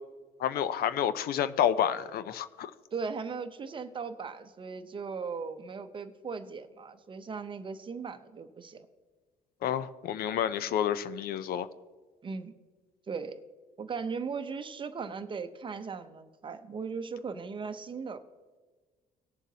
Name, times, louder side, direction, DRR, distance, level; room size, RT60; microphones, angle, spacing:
voice 1, 0.4-2.7 9.6-11.7, left 9 dB, 65° left, 14 dB, 0.5 m, -29 dB
voice 2, 2.9-8.9 12.2-12.5 13.1-13.4 13.8-18.2, right 5 dB, 30° right, 9 dB, 0.7 m, -38 dB
19.0 x 7.1 x 2.8 m, 1.4 s
cardioid pair, 110°, 17 cm